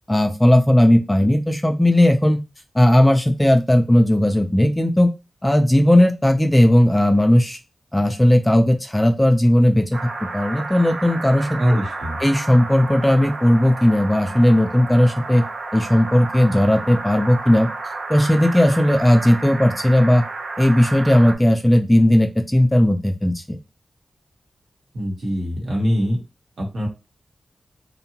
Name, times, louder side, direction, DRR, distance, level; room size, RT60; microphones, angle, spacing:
voice 1, 0.1-2.4 2.7-5.1 5.4-7.6 7.9-11.6 12.2-15.4 15.7-17.7 18.1-20.2 20.6-23.6, left 1 dB, 10° left, 4 dB, 0.3 m, -16 dB
sound 1, 9.9-21.3, right 3 dB, 90° right, 0.5 m, -32 dB
voice 2, 11.6-12.2 24.9-26.2 26.6-26.9, equal, 65° right, -1 dB, 1.0 m, -22 dB
2.7 x 2.2 x 2.8 m, 0.27 s
wide cardioid pair, 115°, 0 cm